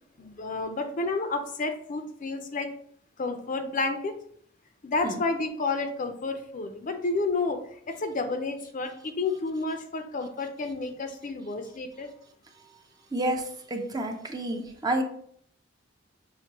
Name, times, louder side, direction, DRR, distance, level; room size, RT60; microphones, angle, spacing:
voice 1, 0.2-2.7 3.2-4.1 4.8-7.6 7.9-12.1, left 3 dB, 45° left, 6 dB, 0.5 m, -30 dB
voice 2, 13.1-15.0, right 1 dB, 20° right, 3 dB, 0.5 m, -29 dB
5.8 x 2.7 x 2.9 m, 0.62 s
head